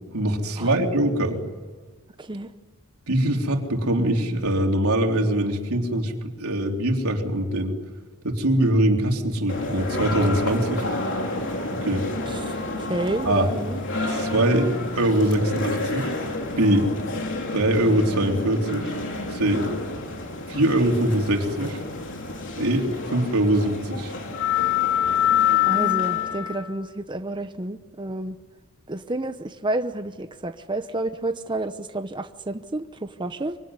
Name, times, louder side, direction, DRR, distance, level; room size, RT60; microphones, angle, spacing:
voice 1, 0.1-1.4 3.1-6.1 6.4-7.8 8.2-10.9 11.8-12.0 13.3-13.5 14.1-16.1 16.6-16.9 17.5-18.9 19.3-19.6 20.5-21.8 22.6-24.1, right 1 dB, 90° right, 2 dB, 3.6 m, -22 dB
voice 2, 2.2-2.5 12.3-13.8 19.5-19.7 25.7-28.4 28.9-33.6, right 2 dB, 20° right, 8 dB, 0.9 m, -30 dB
sound 1, 9.5-26.6, left 5 dB, 60° left, 3.6 m, -28 dB
24.5 x 24.5 x 9.7 m, 1.4 s
head